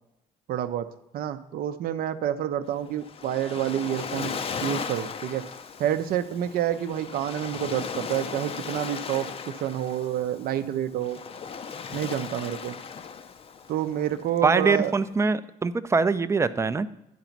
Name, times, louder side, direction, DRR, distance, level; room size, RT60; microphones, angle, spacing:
voice 1, 0.5-0.9 1.1-4.3 4.6-5.5 5.8-11.2 11.9-12.7 13.7-14.9, right 11 dB, 60° right, 10 dB, 0.6 m, -28 dB
Waves surf, 2.7-15.1, left 6 dB, 35° left, 0.6 m, -37 dB
voice 2, 14.4-16.9, right 4 dB, 15° right, 12 dB, 0.5 m, -23 dB
10.5 x 4.0 x 5.8 m, 0.88 s
supercardioid pair, 85°, 17 cm